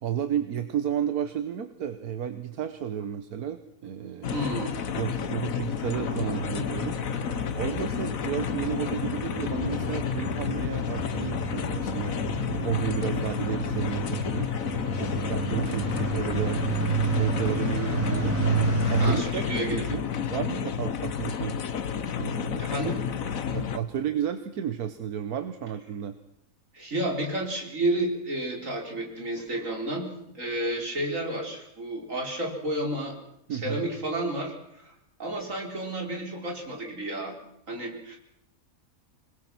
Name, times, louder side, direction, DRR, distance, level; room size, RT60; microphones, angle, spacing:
voice 1, 0.0-4.5 4.9-7.0 7.6-18.4 18.9-21.6 22.1-22.8 23.5-26.1 33.5-33.8, right 9 dB, 80° right, 10 dB, 1.6 m, -32 dB
sound 1, 4.2-23.8, left 7 dB, 70° left, 1.5 m, -31 dB
voice 2, 4.3-4.7 19.0-19.9 22.6-23.1 26.7-30.1 30.3-33.2 33.5-34.9 35.2-37.4 37.7-38.2, right 1 dB, 60° right, 1 dB, 4.6 m, -31 dB
sound 2, 6.0-19.1, right 3 dB, 10° right, 4.7 m, -31 dB
26.5 x 21.0 x 6.1 m, 0.78 s
omnidirectional pair, 1.6 m